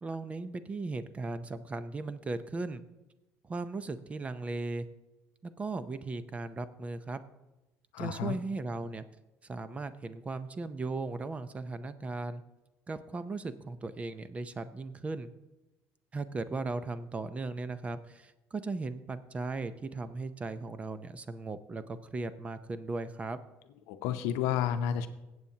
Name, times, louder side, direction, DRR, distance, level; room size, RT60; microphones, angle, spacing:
voice 1, 0.0-2.8 3.4-4.9 5.4-7.2 8.0-9.0 9.5-12.4 12.9-15.3 16.1-23.4, right 3 dB, 25° right, 13 dB, 0.6 m, -37 dB
voice 2, 7.9-8.4 23.9-25.1, left 9 dB, 90° left, 9 dB, 0.7 m, -31 dB
23.0 x 7.9 x 2.8 m, 1.0 s
cardioid pair, 110°, 5 cm